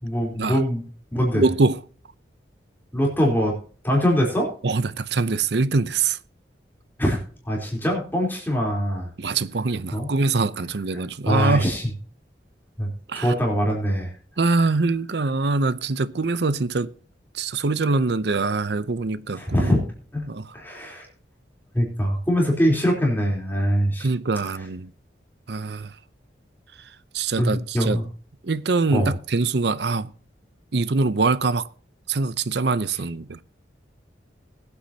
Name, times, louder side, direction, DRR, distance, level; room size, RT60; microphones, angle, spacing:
voice 1, 0.0-0.8 1.1-1.4 2.9-3.6 3.8-4.5 7.0-7.2 7.4-9.1 9.9-10.1 11.3-11.9 12.8-14.1 19.4-19.8 20.1-20.3 20.5-21.1 21.7-24.1 27.4-28.0 28.9-29.1, equal, 10° left, 3.7 m, -23 dB
voice 2, 1.3-1.8 4.6-6.2 9.2-11.7 13.1-13.3 14.4-16.9 17.3-19.8 20.3-20.5 24.0-24.9 25.5-26.0 26.8-28.0 28.4-30.1 30.7-31.7 32.1-33.4, right 3 dB, 70° right, 0.7 m, -24 dB
20.5 x 8.4 x 2.8 m
head